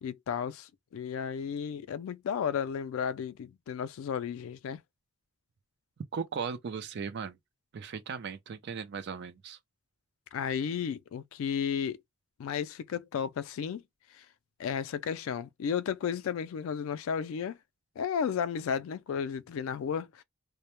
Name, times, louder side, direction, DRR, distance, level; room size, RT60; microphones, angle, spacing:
voice 1, 0.0-4.8 10.3-12.0 12.4-13.8 14.2-14.3 14.6-17.6 18.0-20.2, left 7 dB, 75° left, 0.3 m, -33 dB
voice 2, 6.1-7.4 7.7-9.6, right 6 dB, 55° right, 0.4 m, -37 dB
2.1 x 2.0 x 2.9 m
head